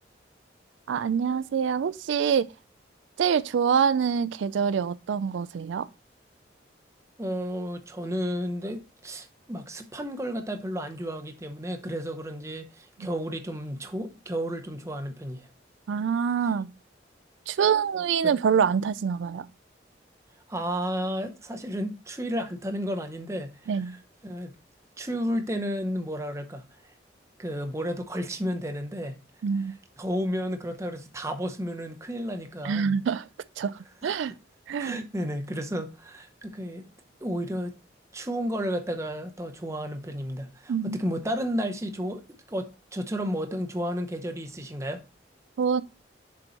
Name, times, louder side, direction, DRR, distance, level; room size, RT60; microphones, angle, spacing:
voice 1, 0.9-2.5 3.2-5.9 15.9-16.7 17.5-19.5 23.7-23.9 29.4-29.8 32.6-33.3 33.6-34.3 34.7-35.0 40.7-41.0 45.6-45.8, right 7 dB, 85° right, 0.3 m, -25 dB
voice 2, 7.2-15.5 18.2-18.3 20.5-23.8 24.2-24.5 25.0-26.9 27.4-29.2 30.0-33.0 34.0-34.1 34.8-36.9 37.2-37.8 38.1-42.2 42.5-45.0, equal, 15° right, 0.7 m, -32 dB
7.0 x 4.5 x 3.9 m
head